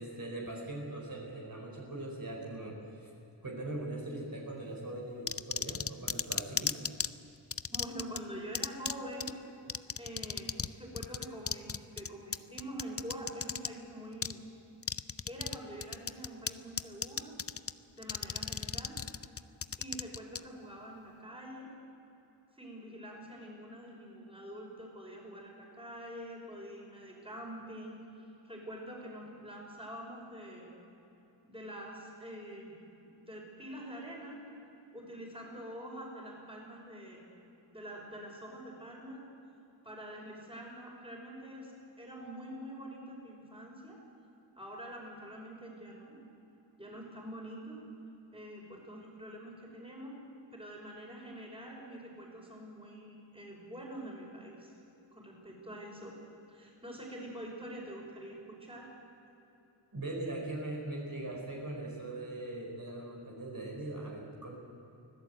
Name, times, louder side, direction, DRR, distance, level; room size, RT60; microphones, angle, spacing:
voice 1, 0.0-3.1 3.4-6.8 59.9-64.6, right 2 dB, 45° right, -2 dB, 4.6 m, -40 dB
sound 1, 5.3-7.1 7.5-8.2 8.5-8.9 9.2-9.3 9.7-10.7 11.0-13.7 14.2-14.3 14.8-15.6 15.8-16.5 16.8-17.7 18.0-20.4, left 6 dB, 30° left, 0.5 m, -34 dB
voice 2, 7.7-9.3 10.0-14.4 15.2-17.4 18.0-19.0 19.8-21.7 22.6-30.7 31.4-32.8 33.2-34.4 34.9-37.2 37.7-39.2 39.8-41.7 42.0-44.0 44.6-46.2 46.8-47.8 48.3-50.2 50.5-54.7 55.1-56.2 56.5-58.9, right 1 dB, 10° right, -1 dB, 5.7 m, -45 dB
24.5 x 16.5 x 8.1 m, 3.0 s
wide cardioid pair, 110°, 47 cm